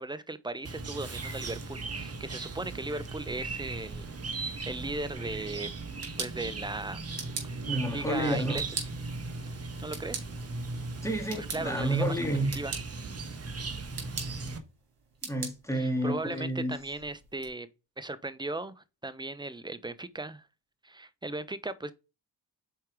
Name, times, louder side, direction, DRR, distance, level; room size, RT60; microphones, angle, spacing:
voice 1, 0.0-5.7 6.2-7.1 7.4-8.8 9.5-10.2 11.4-12.2 12.5-12.8 13.0-13.1 15.7-17.7 18.0-20.4 20.8-21.9, right 2 dB, 10° right, 0.9 m, -37 dB
Chirp tweet, 0.6-14.6, right 3 dB, 35° right, 1.4 m, -38 dB
sound 1, 5.7-17.5, right 5 dB, 60° right, 3.1 m, -44 dB
voice 2, 7.7-8.6 11.0-12.5 15.2-16.8, right 1 dB, 5° left, 2.6 m, -30 dB
5.6 x 4.5 x 4.8 m
supercardioid pair, 55°, 42 cm